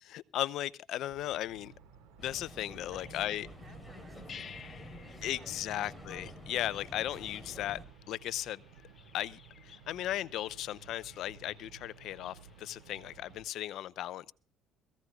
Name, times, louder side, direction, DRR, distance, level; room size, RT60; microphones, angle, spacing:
voice 1, 0.0-1.7 2.2-3.5 5.2-7.8 8.1-8.6 9.1-14.3, left 13 dB, 70° left, 0.7 m, -36 dB
sound 1, 1.1-13.4, right 6 dB, 80° right, 5.2 m, -56 dB
sound 2, 2.2-7.8, left 1 dB, ahead, 3.5 m, -49 dB
voice 2, 2.9-6.1, right 4 dB, 35° right, 3.7 m, -60 dB
sound 3, 3.0-13.7, left 7 dB, 40° left, 1.1 m, -56 dB
22.0 x 15.5 x 2.4 m
supercardioid pair, 90°, 0 cm